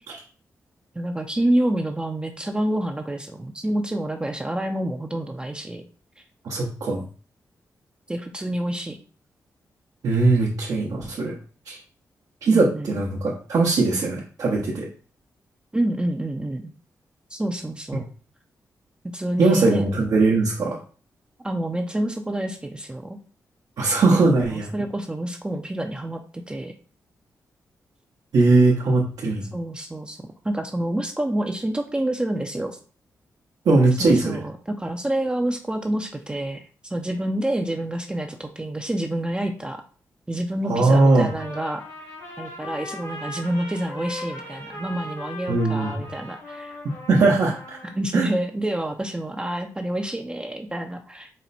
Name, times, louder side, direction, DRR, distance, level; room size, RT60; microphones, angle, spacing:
voice 1, 0.9-5.8 8.1-9.0 12.5-13.0 15.7-16.7 17.3-18.1 19.1-19.9 21.4-23.2 24.5-26.7 29.5-32.8 34.0-39.8 40.3-41.8 42.4-46.8 47.9-51.3, right 1 dB, 15° right, 4 dB, 0.5 m, -28 dB
voice 2, 6.4-7.0 10.0-11.3 11.7-11.8 12.4-14.9 19.4-20.8 23.8-24.7 28.3-29.5 33.6-34.4 40.7-41.3 45.5-46.0 47.1-47.8 48.1-48.2, right 3 dB, 75° right, -3 dB, 0.8 m, -20 dB
Trumpet, 40.9-48.0, left 1 dB, 85° left, 1.3 m, -38 dB
4.2 x 2.1 x 4.0 m, 0.40 s
cardioid pair, 65°, 6 cm